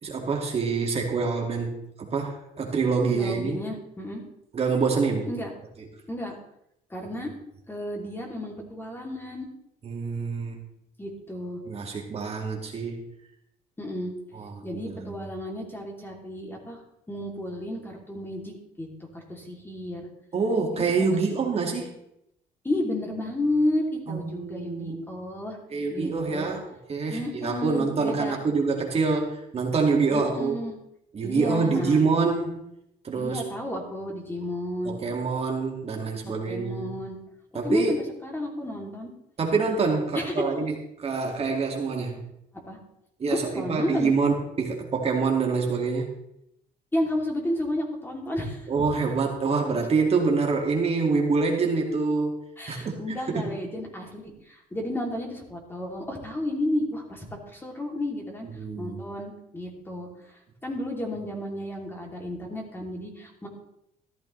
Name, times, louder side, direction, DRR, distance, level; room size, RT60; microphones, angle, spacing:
voice 1, 0.0-3.6 4.5-5.3 9.8-10.6 11.7-13.0 14.3-15.3 20.3-21.9 24.1-24.9 25.7-26.6 26.9-30.6 31.1-32.6 33.0-33.4 34.9-36.9 37.5-37.9 39.4-40.7 41.0-42.2 43.2-46.1 48.7-52.4 52.7-53.5 58.4-59.1, right 4 dB, 35° right, 1 dB, 2.2 m, -26 dB
voice 2, 3.1-4.2 5.3-5.5 6.1-6.3 6.9-7.3 7.7-9.5 11.0-11.6 13.8-14.1 14.6-16.8 17.1-18.9 19.1-20.0 20.7-20.9 22.6-25.6 25.9-26.5 27.1-28.4 30.1-30.8 31.2-32.1 33.1-35.0 36.5-37.2 37.6-39.1 40.1-40.4 42.6-42.8 43.3-44.1 46.9-48.9 52.6-57.2 57.5-58.5 58.8-63.5, left 1 dB, 15° left, 0 dB, 3.0 m, -32 dB
14.5 x 12.0 x 3.3 m, 0.78 s
cardioid pair, 110°, 17 cm